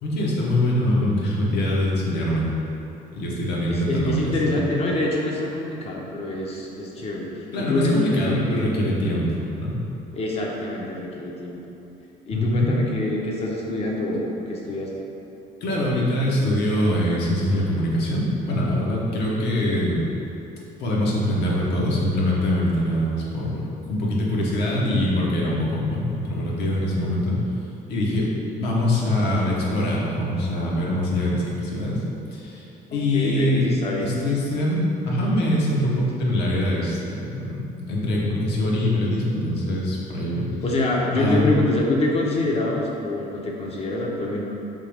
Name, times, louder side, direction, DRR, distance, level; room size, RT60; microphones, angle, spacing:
voice 1, 0.0-2.5 3.1-4.5 7.5-9.8 12.3-12.7 15.6-20.0 20.8-23.6 23.9-27.4 27.9-28.3 28.6-32.0 32.3-32.7 32.9-33.7 34.0-37.5 37.9-40.5 41.1-41.5, left 1 dB, 75° left, -4 dB, 0.8 m, -23 dB
voice 2, 3.7-7.3 7.6-8.7 10.1-11.6 12.3-14.9 32.9-34.1 40.6-44.4, left 2 dB, 35° left, -2 dB, 0.6 m, -25 dB
3.6 x 2.9 x 3.3 m, 2.9 s
cardioid pair, 110°, 17 cm